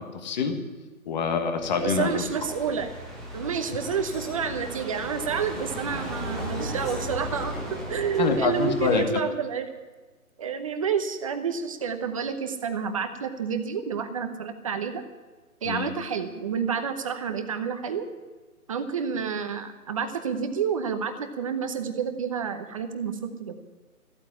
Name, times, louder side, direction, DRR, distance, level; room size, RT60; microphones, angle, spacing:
voice 1, 0.1-0.6 1.0-2.2 8.2-9.0 15.6-15.9, left 5 dB, 30° left, 6 dB, 1.6 m, -25 dB
sound 1, 1.6-9.0, equal, ahead, 1.2 m, -36 dB
voice 2, 1.8-2.9 3.3-9.7 10.4-15.0 15.6-18.0 18.7-23.5, right 6 dB, 25° right, 8 dB, 0.9 m, -29 dB
14.5 x 8.8 x 9.9 m, 1.3 s
hypercardioid pair, 155°, 43 cm